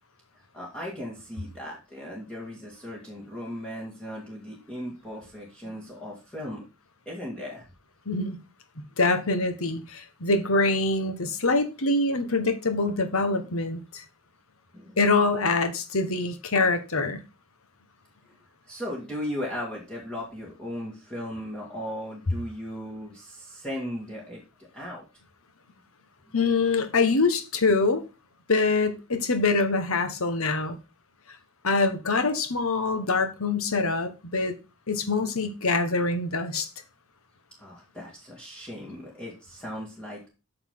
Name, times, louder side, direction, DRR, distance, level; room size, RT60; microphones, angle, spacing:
voice 1, 0.3-6.6 7.1-7.6 14.7-15.0 18.2-18.4 18.7-24.4 24.7-25.0 37.6-40.3, equal, 5° left, 2.0 m, -37 dB
voice 2, 8.1-8.4 9.0-14.0 15.0-17.2 26.3-28.0 28.5-30.8 31.6-34.5 34.9-36.7, left 3 dB, 75° left, 1.3 m, -24 dB
8.7 x 5.8 x 3.7 m
head